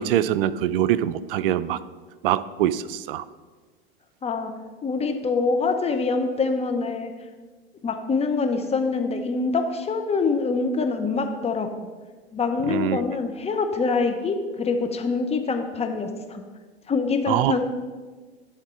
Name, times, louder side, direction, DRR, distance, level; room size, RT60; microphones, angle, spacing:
voice 1, 0.0-1.8 2.2-3.2 12.7-13.0 17.3-17.5, right 11 dB, 60° right, 16 dB, 0.5 m, -23 dB
voice 2, 4.2-4.5 4.8-7.1 7.8-11.7 12.3-16.4 16.9-17.6, left 4 dB, 20° left, 5 dB, 0.7 m, -25 dB
11.0 x 3.7 x 5.5 m, 1.4 s
hypercardioid pair, 85°, 32 cm